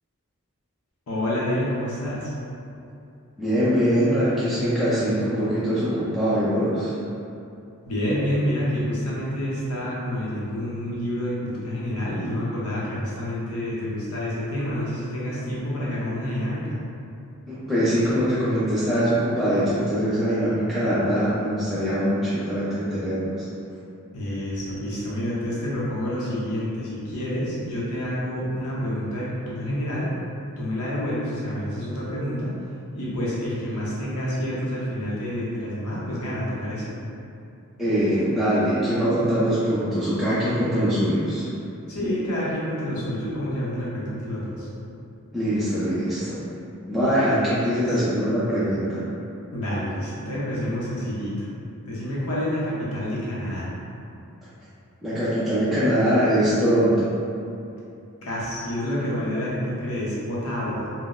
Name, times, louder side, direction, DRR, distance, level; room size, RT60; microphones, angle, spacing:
voice 1, 1.1-2.3 7.9-16.8 24.1-30.1 30.6-32.5 32.9-36.9 41.9-44.7 47.0-48.0 49.5-51.5 51.8-53.7 58.2-60.9, equal, 80° left, -7 dB, 0.6 m, -28 dB
voice 2, 3.4-6.9 17.5-23.5 37.8-41.5 45.3-46.4 46.9-49.1 55.0-57.1, equal, ahead, -13 dB, 0.4 m, -22 dB
3.8 x 2.0 x 2.4 m, 2.7 s
head